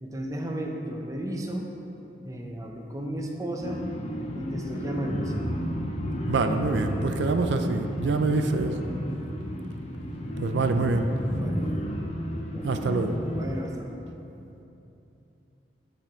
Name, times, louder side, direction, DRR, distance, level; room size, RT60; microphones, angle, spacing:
voice 1, 0.0-1.7 2.2-3.8 4.3-5.5 8.1-8.4 11.4-11.8 12.5-13.0 13.3-14.0, right 1 dB, 20° right, 1 dB, 0.7 m, -34 dB
sound 1, 3.6-13.5, equal, 35° left, 0.7 m, -32 dB
voice 2, 6.3-8.7 10.4-11.1 12.6-13.2, right 3 dB, 80° right, 7 dB, 0.4 m, -25 dB
8.1 x 6.9 x 4.4 m, 2.9 s
head